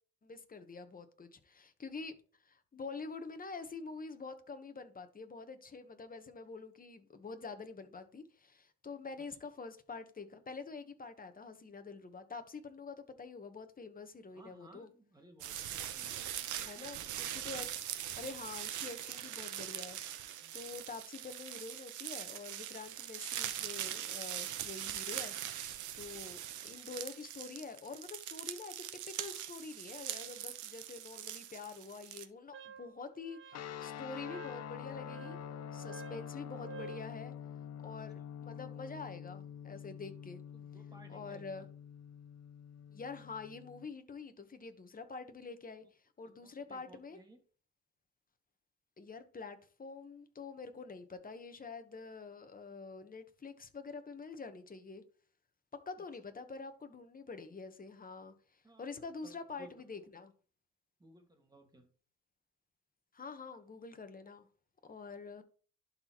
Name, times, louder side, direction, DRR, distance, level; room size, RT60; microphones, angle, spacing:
voice 1, 0.2-2.1 2.4-14.9 16.7-17.7 18.2-25.3 25.9-35.4 35.7-37.3 37.8-40.4 41.1-41.7 42.9-45.8 46.2-47.2 49.0-55.0 55.9-60.3 63.1-64.5 64.8-65.4, left 4 dB, 30° left, 1.2 m, -47 dB
voice 2, 14.3-16.3 16.6-17.3 20.4-20.7 35.8-35.9 38.2-38.3 40.5-41.7 46.2-47.4 56.0-56.1 58.6-58.9 59.2-59.9 61.0-61.9, right 1 dB, 15° right, 2.0 m, -60 dB
sound 1, 15.4-32.3, right 11 dB, 75° right, 0.9 m, -42 dB
Wind instrument woodwind instrument, 32.5-37.1, right 5 dB, 40° right, 0.5 m, -51 dB
sound 2, 33.5-43.9, left 9 dB, 60° left, 0.6 m, -47 dB
11.5 x 4.2 x 3.0 m
cardioid pair, 90°, 30 cm